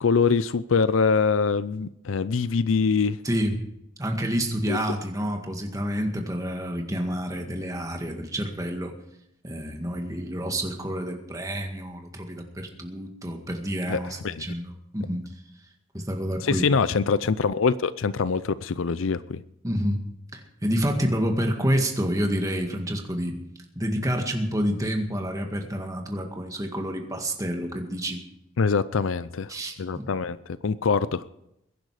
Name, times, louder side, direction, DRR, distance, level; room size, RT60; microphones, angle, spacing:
voice 1, 0.0-3.2 4.7-4.8 13.9-14.4 16.4-19.4 28.6-29.5 29.8-30.4 30.6-31.2, left 5 dB, 75° left, 0.5 m, -24 dB
voice 2, 3.2-3.6 4.0-8.9 9.4-15.2 15.9-16.7 19.6-20.0 20.3-23.4 23.8-28.2 29.5-30.1, equal, 15° right, 1.9 m, -28 dB
22.0 x 10.5 x 4.9 m
head